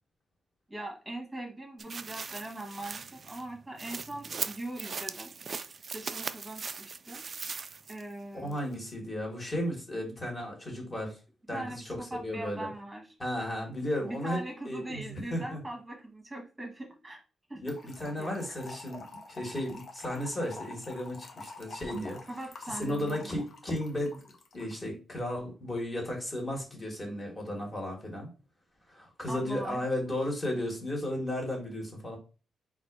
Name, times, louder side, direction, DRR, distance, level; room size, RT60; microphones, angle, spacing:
voice 1, 0.7-5.4 5.9-7.2 7.9-8.6 11.5-13.1 14.0-17.2 17.5-17.6 18.2-18.6 22.3-23.3 29.3-29.8, right 1 dB, 10° right, 2 dB, 1.4 m, -41 dB
sound 1, 1.8-8.1 8.5-8.6, right 5 dB, 40° right, 0.3 m, -39 dB
voice 2, 8.3-11.2 11.5-11.8 12.1-12.7 13.2-14.4 14.7-15.6 17.6-22.2 22.7-28.3 28.9-32.2, left 1 dB, 20° left, -1 dB, 1.8 m, -34 dB
Trickle dribble / Fill (with liquid), 17.7-24.8, left 3 dB, 50° left, 0.8 m, -47 dB
4.0 x 2.5 x 4.7 m, 0.33 s
cardioid pair, 120°, 0 cm